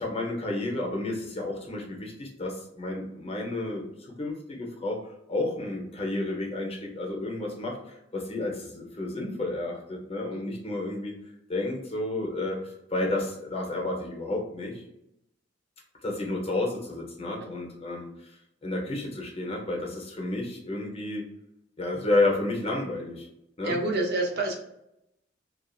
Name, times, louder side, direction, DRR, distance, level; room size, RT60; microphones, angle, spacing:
voice 1, 0.0-5.0 5.3-11.2 11.5-14.8 16.0-18.3 18.6-21.2 21.8-23.3 23.6-23.8, left 2 dB, 35° left, 0 dB, 0.7 m, -31 dB
voice 2, 23.6-24.6, right 2 dB, 60° right, 1 dB, 0.6 m, -28 dB
2.5 x 2.4 x 2.3 m, 0.81 s
head